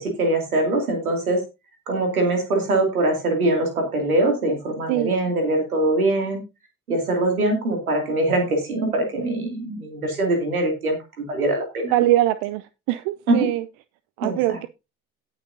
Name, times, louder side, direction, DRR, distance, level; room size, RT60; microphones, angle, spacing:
voice 1, 0.0-1.4 1.9-6.4 6.9-11.9 13.3-13.5 14.2-14.6, right 2 dB, 85° right, 2.5 m, -23 dB
voice 2, 11.9-12.6 12.9-13.6 14.2-14.7, right 15 dB, 65° right, 0.6 m, -22 dB
17.5 x 6.2 x 2.6 m
figure-of-eight pair, 45°, 42 cm